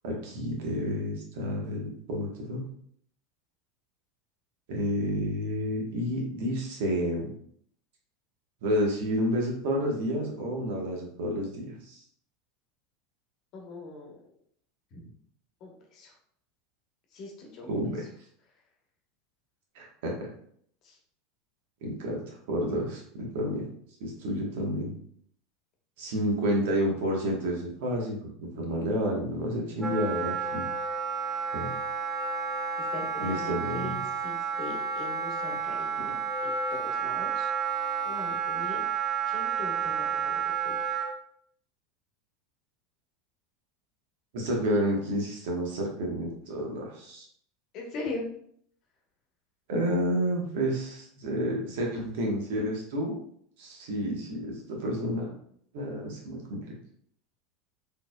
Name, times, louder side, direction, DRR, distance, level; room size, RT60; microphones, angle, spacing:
voice 1, 0.0-2.6 4.7-7.3 8.6-12.0 17.7-18.0 19.7-20.3 21.8-23.6 24.0-24.9 26.0-30.7 31.5-31.7 33.2-33.9 44.3-47.2 49.7-53.2 53.6-55.3 55.7-56.7, equal, 70° right, 0 dB, 1.2 m, -30 dB
voice 2, 13.5-14.2 14.9-15.1 15.6-16.1 17.1-18.1 20.8-21.0 32.8-36.1 36.4-37.5 38.0-38.9 39.2-40.8 47.7-48.3, left 2 dB, 50° left, 0 dB, 1.1 m, -41 dB
Wind instrument woodwind instrument, 29.8-41.1, right 6 dB, 5° right, 0.8 m, -31 dB
4.1 x 3.3 x 2.3 m, 0.64 s
hypercardioid pair, 90°, 0 cm